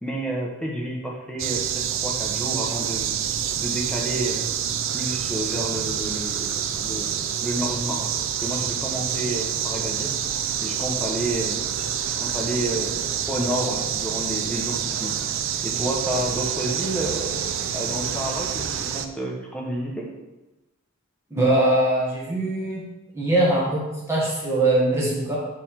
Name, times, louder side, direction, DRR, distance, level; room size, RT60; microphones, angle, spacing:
voice 1, 0.0-3.1 3.6-4.4 4.9-8.1 8.4-10.1 10.6-11.6 12.0-13.0 13.3-15.1 15.6-20.1, right 1 dB, 5° left, -2 dB, 1.0 m, -30 dB
sound 1, 1.4-19.1, right 8 dB, 75° right, 0.5 m, -27 dB
voice 2, 21.3-22.8 23.1-25.4, right 1 dB, 15° right, -6 dB, 1.3 m, -22 dB
8.1 x 3.5 x 4.4 m, 1.0 s
head